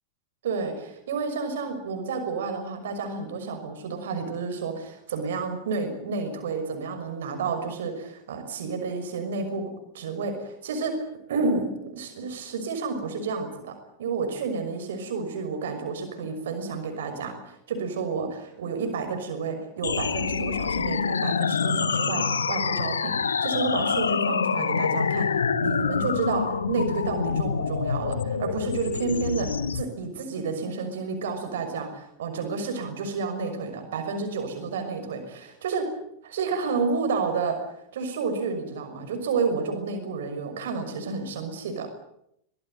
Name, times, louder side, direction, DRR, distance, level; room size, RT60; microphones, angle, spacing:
voice 1, 0.4-25.3 25.6-35.9 36.2-37.6 37.9-41.9, right 4 dB, 60° right, 7 dB, 6.0 m, -30 dB
sound 1, 19.8-29.8, left 6 dB, 70° left, 1.1 m, -26 dB
24.5 x 19.5 x 9.1 m, 0.75 s
figure-of-eight pair, 90°, 0 cm